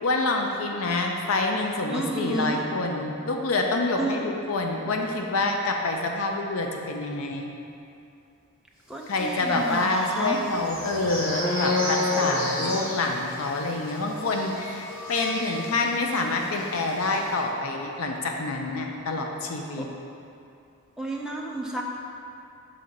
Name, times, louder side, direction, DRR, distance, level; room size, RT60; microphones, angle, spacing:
voice 1, 0.0-7.5 9.1-19.9, left 2 dB, 70° left, 2 dB, 0.5 m, -27 dB
voice 2, 1.9-2.6 4.0-4.2 8.9-10.4 21.0-21.8, right 2 dB, 5° right, -2 dB, 0.4 m, -30 dB
sound 1, 9.4-16.1 16.4-16.6 16.9-17.2, left 2 dB, 40° left, 1.0 m, -30 dB
5.9 x 3.7 x 5.2 m, 2.6 s
head